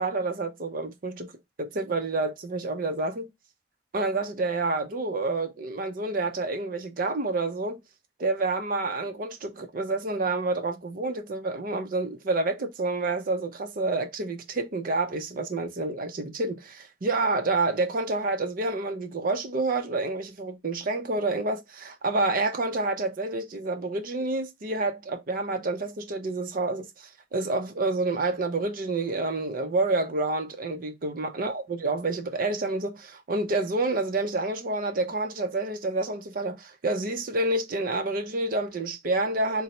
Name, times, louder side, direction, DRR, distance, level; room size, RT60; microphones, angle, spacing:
voice 1, 0.0-1.3 1.6-3.3 3.9-7.8 8.2-39.6, right 2 dB, 50° right, 0.6 m, -28 dB
3.9 x 2.0 x 4.2 m
head